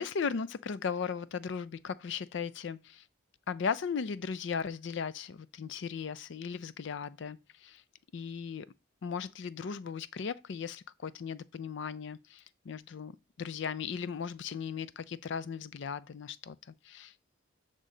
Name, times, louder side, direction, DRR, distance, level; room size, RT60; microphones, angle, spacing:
voice 1, 0.0-3.0 3.5-7.8 8.1-8.7 9.0-13.1 13.4-16.6 16.8-17.1, left 6 dB, 60° left, 0.4 m, -37 dB
8.3 x 3.7 x 3.8 m
head